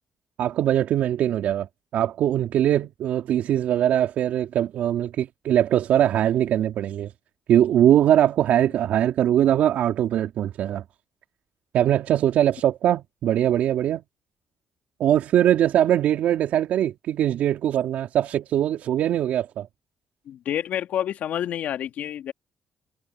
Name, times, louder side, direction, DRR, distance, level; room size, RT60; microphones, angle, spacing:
voice 1, 0.4-1.7 1.9-7.1 7.5-10.8 11.7-14.0 15.0-19.7, right 11 dB, 75° right, 3.2 m, -21 dB
voice 2, 20.3-22.3, left 10 dB, 70° left, 2.8 m, -28 dB
supercardioid pair, 65°, 3 cm